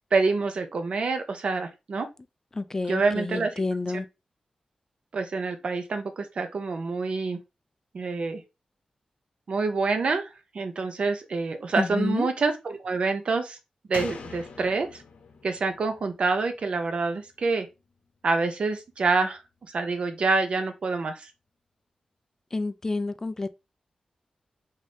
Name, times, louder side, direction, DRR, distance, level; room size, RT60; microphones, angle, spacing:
voice 1, 0.1-2.1 2.9-3.5 5.1-7.4 7.9-8.4 9.5-10.3 10.5-13.6 13.9-15.0 15.4-17.7 18.2-19.4 19.7-21.3, right 4 dB, 55° right, 0.6 m, -26 dB
voice 2, 2.5-4.0 11.8-12.3 22.5-23.5, left 3 dB, 20° left, 0.3 m, -29 dB
Slam, 13.9-17.4 17.7-17.8, left 4 dB, 85° left, 0.7 m, -43 dB
3.6 x 2.7 x 3.4 m
wide cardioid pair, 160°, 2 cm